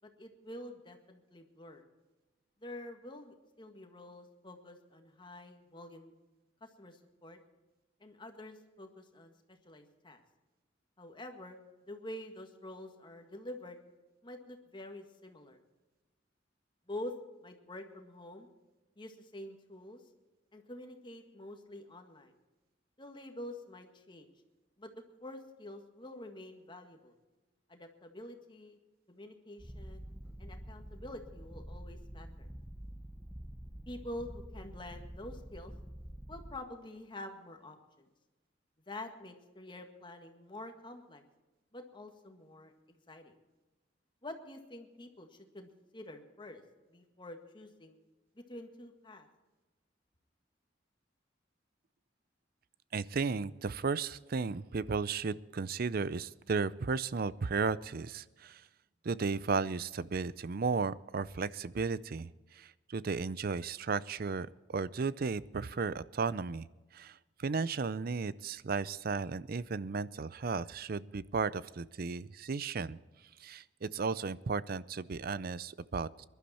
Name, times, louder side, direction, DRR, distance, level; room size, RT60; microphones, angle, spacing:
voice 1, 0.0-1.8 2.6-6.1 6.6-7.4 8.0-10.2 11.0-11.6 11.9-13.8 14.2-15.6 16.9-17.1 17.4-18.5 19.0-20.0 20.5-22.3 23.0-24.3 24.8-24.9 25.2-27.1 27.7-28.8 29.1-30.1 30.4-32.5 33.9-35.7 36.3-38.1 38.9-41.2 41.7-43.3 44.2-46.6 46.9-48.0 48.3-49.3, left 1 dB, 25° left, 5 dB, 1.8 m, -47 dB
Purr, 29.6-36.6, equal, 10° right, 0.8 m, -47 dB
voice 2, 52.9-58.6 59.0-66.7 66.9-73.0 73.4-76.2, right 4 dB, 55° right, 18 dB, 0.5 m, -34 dB
22.0 x 12.0 x 4.3 m, 1.2 s
head